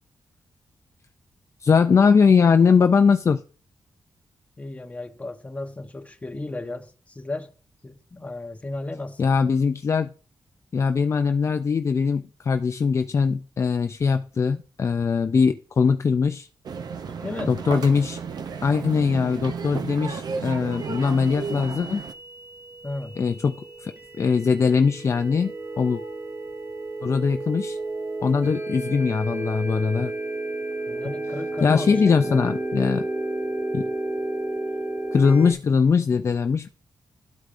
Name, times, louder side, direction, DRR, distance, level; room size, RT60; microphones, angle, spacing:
voice 1, 1.6-3.4 9.2-10.1 10.7-16.5 17.5-18.2 18.6-22.0 23.2-23.6 23.8-26.0 27.0-27.8 28.2-30.1 31.6-33.1 33.7-33.9 35.1-36.7, left 5 dB, 40° left, 0.3 m, -21 dB
voice 2, 4.6-7.5 7.8-9.2 17.1-17.6 22.8-23.2 30.9-32.4, left 2 dB, 20° left, 0.8 m, -34 dB
sound 1, 16.7-22.1, right 6 dB, 60° right, 0.5 m, -33 dB
sound 2, 20.7-35.5, right 2 dB, 35° right, 1.4 m, -32 dB
12.5 x 4.7 x 2.5 m
wide cardioid pair, 120°, 8 cm